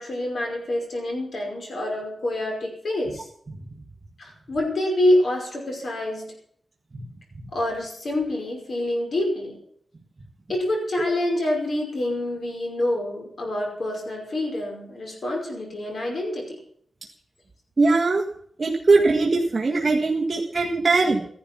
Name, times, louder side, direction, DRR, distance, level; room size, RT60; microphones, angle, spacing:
voice 1, 0.0-3.3 4.2-6.3 7.5-9.6 10.5-16.6, left 1 dB, 55° left, 1 dB, 5.3 m, -26 dB
voice 2, 17.8-18.2 18.6-21.3, right 3 dB, 35° right, -3 dB, 1.8 m, -21 dB
14.0 x 11.5 x 6.0 m, 0.63 s
wide cardioid pair, 150°, 0 cm